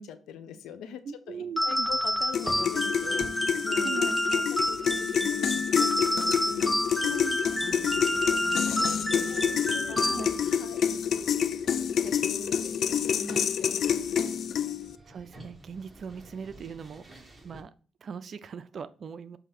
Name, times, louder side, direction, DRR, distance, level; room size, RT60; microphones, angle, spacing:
voice 1, 0.0-7.1 7.6-14.3, left 4 dB, 85° left, 11 dB, 0.8 m, -44 dB
voice 2, 1.1-1.9 3.8-4.2 7.0-7.4 10.0-10.3 15.1-17.7 18.0-19.4, right 6 dB, 55° right, 14 dB, 0.5 m, -40 dB
sound 1, 1.6-10.6, equal, 5° left, 0.4 m, -29 dB
sound 2, 1.8-17.6, right 2 dB, 25° right, 1.8 m, -51 dB
sound 3, 2.3-15.0, left 8 dB, 65° left, 0.4 m, -28 dB
7.9 x 2.8 x 5.8 m, 0.39 s
cardioid pair, 80°, 0 cm